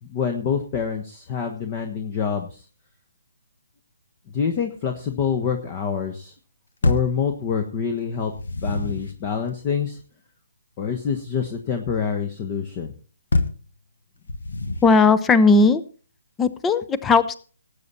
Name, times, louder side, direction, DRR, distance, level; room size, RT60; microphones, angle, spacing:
voice 1, 0.0-2.6 4.3-6.3 6.8-8.3 8.6-10.0 10.8-12.9, left 6 dB, 30° left, 6 dB, 1.3 m, -26 dB
sound 1, 6.8-7.2 8.1-9.2 13.3-13.7 14.3-15.0, left 2 dB, 65° left, 1.4 m, -25 dB
voice 2, 14.8-15.8 16.4-17.3, left 4 dB, 10° left, 14 dB, 0.7 m, -17 dB
18.5 x 8.4 x 4.3 m, 0.39 s
figure-of-eight pair, 135°, 0 cm